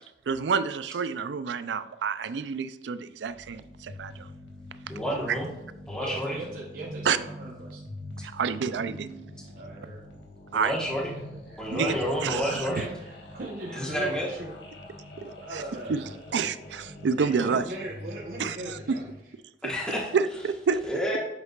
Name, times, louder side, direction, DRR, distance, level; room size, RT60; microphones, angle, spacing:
voice 1, 0.0-4.3 5.3-5.4 7.1-7.2 8.2-9.3 10.5-10.7 11.7-12.0 12.2-12.7 15.5-15.6 15.9-16.0 16.3-17.6 18.4-19.0 20.1-20.8, right 5 dB, 80° right, 13 dB, 0.4 m, -28 dB
sound 1, 3.3-19.2, left 1 dB, 85° left, 1.4 m, -45 dB
voice 2, 4.9-5.5 5.9-6.4 10.5-11.1 11.6-12.8 13.7-14.3 19.6-20.1 20.9-21.2, equal, 5° left, -5 dB, 1.2 m, -29 dB
voice 3, 6.0-7.8 9.5-10.0 11.1-14.5 15.4-16.4 17.2-19.1, right 1 dB, 55° right, -4 dB, 0.9 m, -39 dB
7.8 x 5.8 x 2.4 m, 0.94 s
head